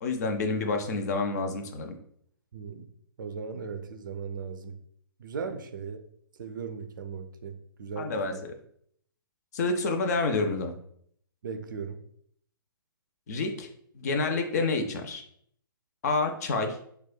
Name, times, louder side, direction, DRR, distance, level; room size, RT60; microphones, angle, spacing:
voice 1, 0.0-1.9 8.0-8.3 9.5-10.7 13.3-13.7 14.0-15.2 16.0-16.8, left 3 dB, 45° left, 5 dB, 0.5 m, -28 dB
voice 2, 2.5-2.8 3.2-4.7 5.2-6.0 6.4-8.4 11.4-12.0, right 5 dB, 60° right, 9 dB, 0.4 m, -37 dB
4.1 x 2.2 x 2.2 m, 0.67 s
figure-of-eight pair, 120°, 12 cm